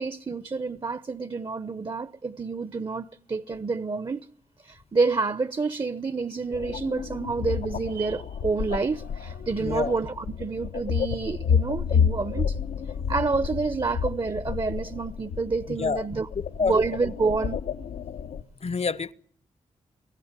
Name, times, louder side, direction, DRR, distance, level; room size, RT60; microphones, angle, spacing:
voice 1, 0.0-4.3 4.6-12.6 13.1-16.3 16.6-17.6, right 4 dB, 35° right, 0.9 m, -28 dB
sound 1, 6.5-18.4, left 7 dB, 85° left, 1.0 m, -30 dB
voice 2, 9.6-10.0 15.7-16.1 16.3-16.8 18.6-19.1, left 5 dB, 50° left, 0.9 m, -28 dB
24.5 x 15.5 x 9.7 m
supercardioid pair, 45°, 14 cm